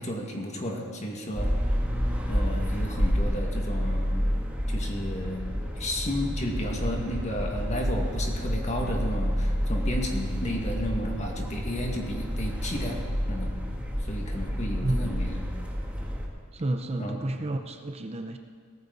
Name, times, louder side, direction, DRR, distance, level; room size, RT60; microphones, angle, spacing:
voice 1, 0.0-1.5 2.3-4.3 4.7-5.4 5.8-13.0 13.3-13.5 14.0-15.4 17.0-17.2, equal, 35° left, 0 dB, 2.0 m, -33 dB
sound 1, 1.3-16.3, equal, 5° right, 1.7 m, -29 dB
voice 2, 16.5-18.4, right 1 dB, 30° right, 6 dB, 0.6 m, -30 dB
18.0 x 14.0 x 4.1 m, 2.2 s
head